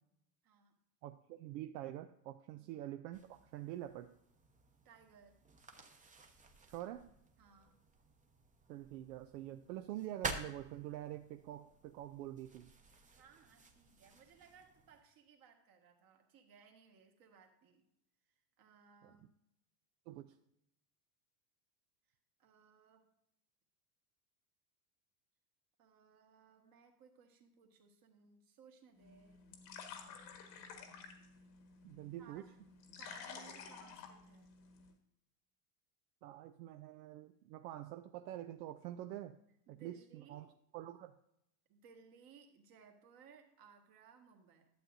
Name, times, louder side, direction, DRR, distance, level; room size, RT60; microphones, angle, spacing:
voice 1, 0.4-0.8 4.8-5.3 7.4-7.8 12.9-17.8 18.6-19.3 22.4-23.1 25.8-29.4 32.2-32.5 33.0-34.5 39.7-40.5 41.7-44.7, right 6 dB, 45° right, 4 dB, 1.7 m, -63 dB
voice 2, 1.0-4.1 6.7-7.1 8.7-12.7 19.0-19.1 20.1-20.3 31.8-32.4 36.2-39.4 39.7-40.5 40.7-41.2, right 13 dB, 75° right, 8 dB, 0.6 m, -46 dB
sound 1, 3.1-15.0, right 3 dB, 15° right, 0.8 m, -51 dB
sound 2, 29.0-34.9, left 6 dB, 90° left, 1.7 m, -52 dB
11.5 x 7.7 x 2.6 m, 0.78 s
supercardioid pair, 120°, 49 cm